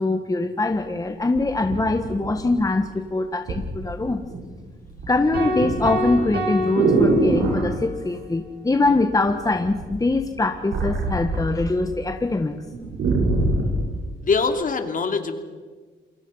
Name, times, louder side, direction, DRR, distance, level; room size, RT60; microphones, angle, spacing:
voice 1, 0.0-4.2 5.1-12.6, left 2 dB, 15° left, 6 dB, 1.5 m, -23 dB
sound 1, 0.7-0.8 1.3-2.8 3.5-3.7 4.0-4.5 4.8-7.7 8.8-9.3 9.6-11.9 12.2-12.3 12.7-13.8 14.4-14.5, right 2 dB, 80° right, 7.6 m, -23 dB
sound 2, 5.3-7.8, right 1 dB, 50° right, 7.6 m, -28 dB
voice 2, 14.2-15.4, left 4 dB, 45° left, 6 dB, 2.8 m, -23 dB
28.5 x 22.0 x 5.6 m, 1.5 s
cardioid pair, 90°, 20 cm